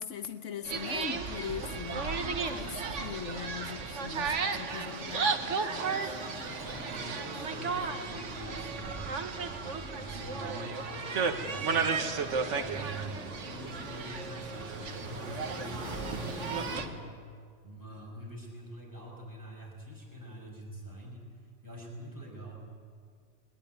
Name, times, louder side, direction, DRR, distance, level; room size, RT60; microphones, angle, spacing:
voice 1, 0.0-6.2, left 7 dB, 80° left, 10 dB, 1.3 m, -41 dB
sound 1, 0.6-16.9, right 5 dB, 80° right, 1.6 m, -34 dB
sound 2, 1.3-16.8, right 1 dB, 30° right, 5.8 m, -47 dB
voice 2, 6.4-11.9 12.2-12.3 12.5-17.2 17.6-22.5, right 1 dB, 15° right, -3 dB, 6.4 m, -45 dB
22.5 x 18.5 x 9.4 m, 2.1 s
omnidirectional pair, 1.2 m